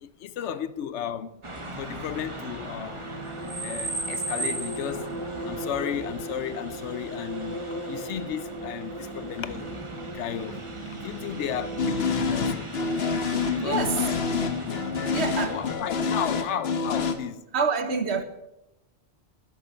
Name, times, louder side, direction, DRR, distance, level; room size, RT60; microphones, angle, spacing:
voice 1, 0.0-1.4 1.8-3.0 3.6-5.2 5.5-9.7 10.1-12.7 13.5-14.1 15.1-17.5, left 9 dB, 85° left, 1.0 m, -34 dB
sound 1, 1.4-15.8, right 2 dB, 25° right, 1.4 m, -38 dB
sound 2, 2.8-12.4, right 1 dB, 20° left, 6.3 m, -38 dB
sound 3, 11.8-17.1, left 5 dB, 65° left, 1.2 m, -27 dB
voice 2, 13.6-14.1 14.7-15.6 17.0-17.1 17.5-18.2, right 5 dB, 70° right, 1.3 m, -28 dB
12.5 x 9.9 x 5.4 m
omnidirectional pair, 1.2 m